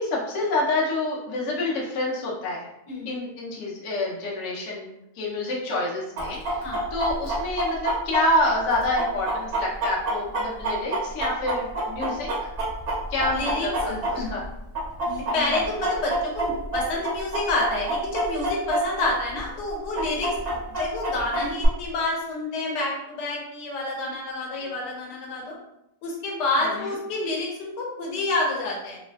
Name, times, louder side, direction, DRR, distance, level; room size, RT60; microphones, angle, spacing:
voice 1, 0.0-2.7 3.1-4.9 5.2-6.7 6.9-12.5 13.1-14.4 15.3-15.5 26.6-26.9, left 2 dB, 55° left, -4 dB, 0.8 m, -27 dB
voice 2, 2.9-3.2 6.6-6.9 13.3-14.3 15.0-25.5 26.0-29.0, left 2 dB, 85° left, -2 dB, 1.3 m, -29 dB
Chicken rooster, 6.2-14.5 14.7-19.1 19.4-19.5 19.9-21.7, right 1 dB, 65° right, 0.5 m, -27 dB
3.1 x 2.4 x 2.3 m, 0.85 s
omnidirectional pair, 1.8 m